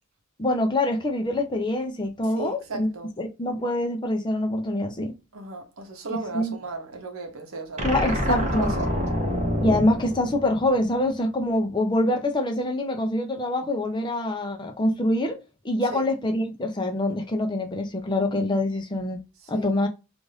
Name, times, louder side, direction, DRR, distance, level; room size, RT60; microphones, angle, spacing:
voice 1, 0.4-2.9 3.2-5.1 6.3-6.5 7.8-8.7 9.6-15.4 15.6-19.2 19.5-19.9, left 1 dB, 20° left, 0.5 m, -25 dB
voice 2, 2.2-3.1 5.3-9.0 15.8-16.0 19.4-19.7, right 3 dB, 80° right, 0.9 m, -34 dB
sound 1, 7.8-11.1, equal, 35° right, 0.7 m, -27 dB
2.6 x 2.5 x 3.1 m
head